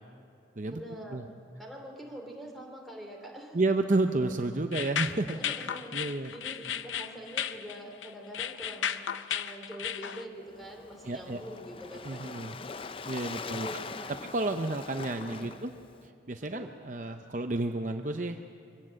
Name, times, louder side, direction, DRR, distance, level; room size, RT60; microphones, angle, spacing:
voice 1, 0.7-3.6 5.3-12.3 13.3-14.1 15.2-15.5 16.4-16.7, equal, ahead, 1 dB, 2.8 m, -45 dB
voice 2, 3.5-5.4 5.9-6.3 11.1-11.4 12.0-12.5 13.1-13.7 14.3-15.7 16.3-18.4, right 2 dB, 40° right, 6 dB, 0.7 m, -30 dB
sound 1, 4.7-10.2, left 9 dB, 90° left, 0.7 m, -34 dB
Waves surf, 10.4-16.1, left 4 dB, 30° left, 0.5 m, -42 dB
23.5 x 17.5 x 7.7 m, 2.6 s
head